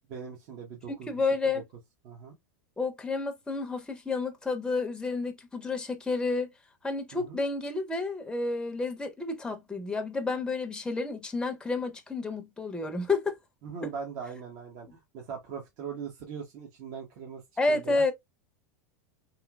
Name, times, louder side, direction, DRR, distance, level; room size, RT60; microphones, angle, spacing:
voice 1, 0.1-1.1 2.0-2.4 7.1-7.4 13.6-17.4 17.7-18.0, right 6 dB, 55° right, 0.9 m, -40 dB
voice 2, 1.1-1.6 2.8-6.5 6.8-13.4 13.8-13.9 17.6-18.1, left 3 dB, 10° left, 0.6 m, -30 dB
3.1 x 2.9 x 2.2 m
hypercardioid pair, 100°, 9 cm